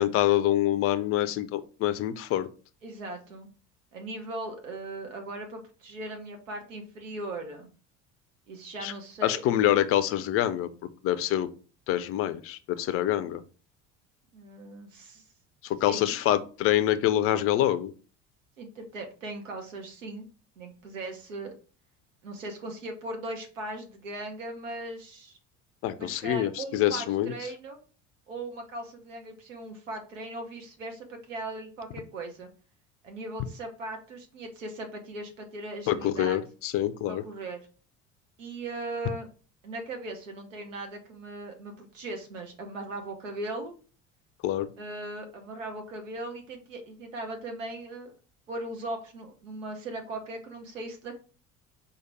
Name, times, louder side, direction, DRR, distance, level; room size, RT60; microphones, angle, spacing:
voice 1, 0.0-2.5 8.8-8.9 9.2-10.7 11.0-11.5 11.9-13.4 15.7-17.9 25.8-27.3 35.9-37.2 44.4-44.7, left 12 dB, 35° left, 12 dB, 0.5 m, -26 dB
voice 2, 2.8-3.5 3.9-7.7 8.5-9.8 14.3-15.2 15.9-16.2 18.6-20.3 20.6-21.5 22.2-25.4 26.0-27.8 28.3-32.5 33.0-36.4 37.1-37.6 38.4-39.3 39.6-43.7 44.8-48.1 48.5-51.2, right 2 dB, 75° right, 4 dB, 0.9 m, -38 dB
4.7 x 2.3 x 4.5 m, 0.38 s
figure-of-eight pair, 60°, 38 cm